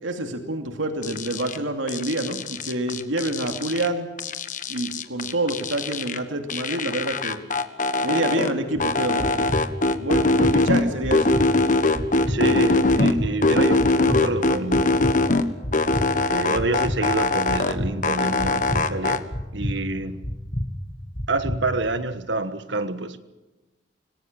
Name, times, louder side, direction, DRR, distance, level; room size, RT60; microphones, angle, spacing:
voice 1, 0.0-4.1 4.7-7.4 8.0-9.5 10.0-11.3, right 1 dB, 90° right, 2.7 m, -27 dB
sound 1, 1.0-1.6 1.9-3.9 4.2-6.2 6.5-8.5 8.8-10.8 11.1-13.1 13.4-15.4 15.7-17.7 18.0-19.2, left 2 dB, 40° left, 1.4 m, -22 dB
sound 2, 8.8-21.9, equal, 25° left, 2.0 m, -31 dB
voice 2, 12.3-15.1 16.2-19.2 19.5-20.2 21.3-23.2, right 2 dB, 70° right, 1.4 m, -27 dB
26.0 x 19.0 x 7.4 m
head